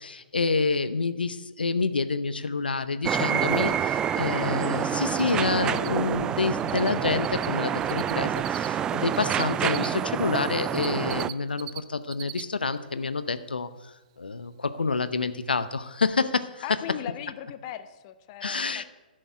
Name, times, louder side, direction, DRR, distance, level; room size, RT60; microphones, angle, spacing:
voice 1, 0.0-16.6 18.4-18.8, left 4 dB, 90° left, 12 dB, 0.7 m, -28 dB
sound 1, 3.0-11.3, right 9 dB, 15° right, 0.3 m, -27 dB
Cricket, 5.1-5.3 5.6-6.9 7.2-9.9 10.4-11.8 12.0-12.4 12.8-12.9 15.4-15.5 15.9-16.2, right 15 dB, 40° right, 0.7 m, -39 dB
voice 2, 16.6-18.8, left 11 dB, 35° left, 11 dB, 0.8 m, -38 dB
11.0 x 6.5 x 9.4 m, 1.1 s
hypercardioid pair, 135°, 5 cm